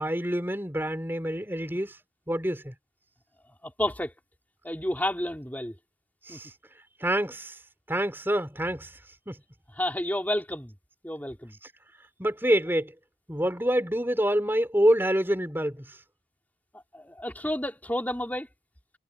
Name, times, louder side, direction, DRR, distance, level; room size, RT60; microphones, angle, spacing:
voice 1, 0.0-2.0 2.3-2.7 6.2-6.5 7.0-7.6 7.9-9.0 9.3-9.4 12.2-12.9 13.3-16.0, equal, 10° right, 5.0 m, -26 dB
voice 2, 3.6-4.1 4.6-5.7 6.3-6.4 9.8-10.7 11.0-11.6 16.9-18.5, left 1 dB, 10° left, 4.5 m, -30 dB
head